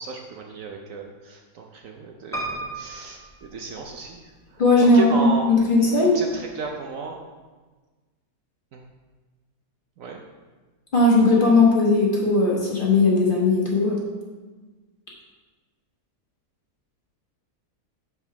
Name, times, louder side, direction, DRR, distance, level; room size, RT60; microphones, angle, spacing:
voice 1, 0.0-7.2 8.7-8.8 10.0-10.2, right 4 dB, 65° right, 1 dB, 0.9 m, -34 dB
Piano, 2.3-4.3 4.9-5.6 6.0-6.1 6.3-6.4, right 2 dB, 5° left, 0.6 m, -35 dB
voice 2, 4.6-6.2 10.9-14.0, left 3 dB, 35° left, -3 dB, 1.2 m, -18 dB
5.2 x 4.7 x 5.8 m, 1.3 s
omnidirectional pair, 1.7 m